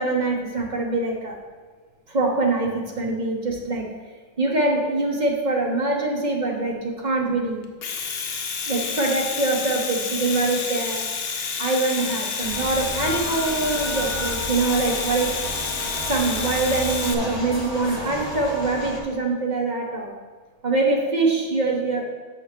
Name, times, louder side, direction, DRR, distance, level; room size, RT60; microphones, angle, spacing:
voice 1, 0.0-1.4 2.1-3.9 4.4-7.6 8.7-11.0 11.6-15.4 16.1-20.1 20.6-22.0, right 3 dB, 35° right, 0 dB, 1.0 m, -24 dB
Domestic sounds home sounds, 7.6-17.1, left 5 dB, 55° left, 0.8 m, -29 dB
sound 1, 12.4-19.0, equal, 20° left, 1.0 m, -32 dB
6.6 x 6.2 x 5.1 m, 1.5 s
omnidirectional pair, 1.5 m